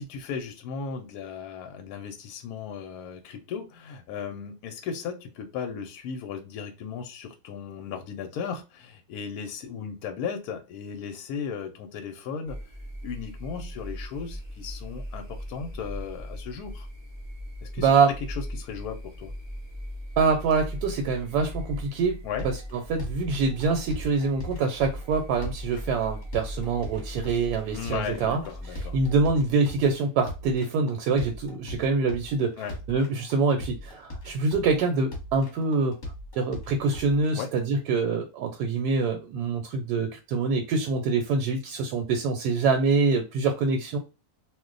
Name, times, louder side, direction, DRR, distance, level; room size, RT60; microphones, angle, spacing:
voice 1, 0.0-12.6 13.0-16.9 17.6-17.9 18.3-19.3 22.2-22.5 27.7-29.0 32.6-32.8 37.3-37.5, left 6 dB, 75° left, 4 dB, 1.0 m, -36 dB
sound 1, 12.4-29.5, equal, 30° right, 0.5 m, -39 dB
voice 2, 17.8-18.1 20.2-22.2 22.4-22.6 22.9-28.4 28.7-32.5 32.9-35.9 36.4-44.0, right 4 dB, 80° right, 4 dB, 1.1 m, -25 dB
sound 2, 22.4-37.3, left 1 dB, 35° left, 1.0 m, -40 dB
2.5 x 2.1 x 3.7 m, 0.29 s
omnidirectional pair, 1.7 m